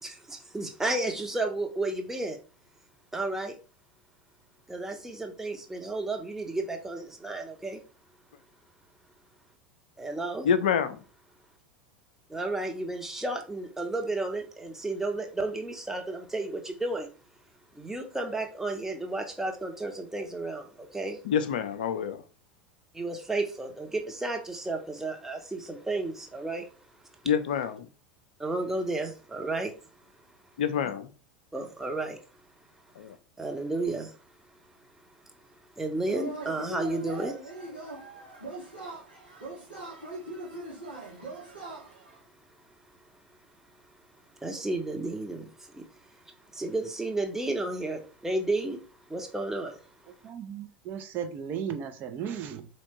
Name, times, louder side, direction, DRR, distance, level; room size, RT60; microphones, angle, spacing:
voice 1, 0.0-2.4 3.1-3.6 4.7-7.8 10.0-10.5 12.3-17.1 17.7-21.2 22.9-26.7 28.4-29.7 31.5-32.2 33.4-34.1 35.8-37.5 44.4-46.2 46.5-48.8 49.1-49.8, right 2 dB, 5° right, 0.9 m, -32 dB
voice 2, 10.4-11.0 21.2-22.2 27.2-27.9 30.6-31.1 33.0-33.2, left 7 dB, 65° left, 0.4 m, -27 dB
Yell / Cheering, 36.0-42.2, right 2 dB, 90° right, 1.7 m, -41 dB
voice 3, 50.2-52.7, right 8 dB, 40° right, 0.7 m, -35 dB
4.2 x 3.1 x 3.0 m
figure-of-eight pair, 80°, 5 cm